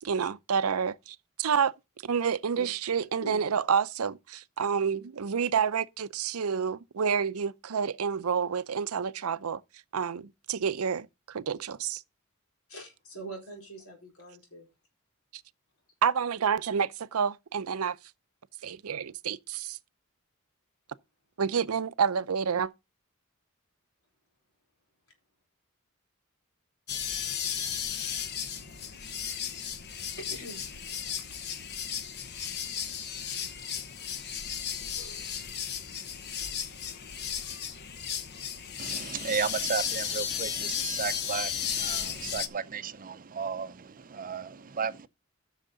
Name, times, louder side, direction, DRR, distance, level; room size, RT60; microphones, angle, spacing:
voice 1, 0.0-1.7 2.0-9.6 9.9-12.0 16.0-18.0 18.6-19.8 21.4-22.7, right 6 dB, 90° right, 0.6 m, -29 dB
voice 2, 12.7-14.7 28.6-28.7 30.2-30.7 31.2-31.3 33.7-34.1, right 2 dB, 75° left, 4.5 m, -44 dB
sound 1, 26.9-42.5, left 8 dB, 50° left, 0.9 m, -34 dB
voice 3, 38.8-45.1, right 6 dB, 40° right, 0.6 m, -34 dB
13.5 x 6.5 x 3.9 m
head